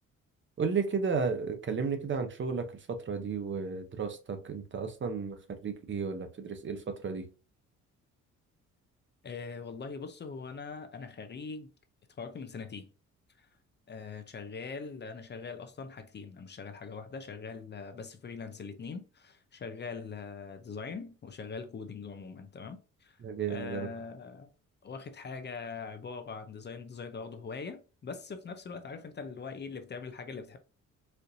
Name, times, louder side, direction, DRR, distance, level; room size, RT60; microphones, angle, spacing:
voice 1, 0.6-7.3 23.2-23.9, right 5 dB, 40° right, 0.8 m, -33 dB
voice 2, 9.2-11.7 12.2-12.9 13.4-13.5 13.9-23.2 23.5-24.5 24.8-30.6, left 5 dB, 35° left, 0.6 m, -42 dB
4.3 x 2.6 x 2.6 m
cardioid pair, 90°, 30 cm